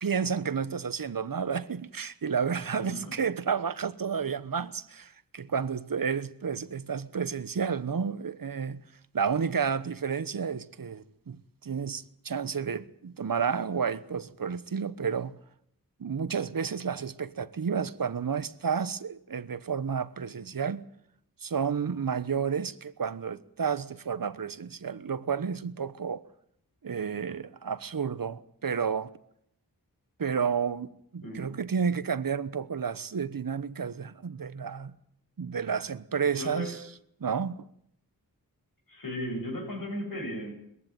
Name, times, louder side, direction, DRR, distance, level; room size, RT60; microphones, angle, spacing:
voice 1, 0.0-8.8 9.1-15.3 16.0-20.8 21.4-26.2 26.8-29.1 30.2-34.9 35.4-36.8 37.2-37.6, right 6 dB, 65° right, 1.2 m, -31 dB
voice 2, 2.8-3.1 31.2-31.5 36.3-36.8 38.9-40.5, equal, 65° left, 8.0 m, -36 dB
21.5 x 15.0 x 9.2 m
wide cardioid pair, 70°, 36 cm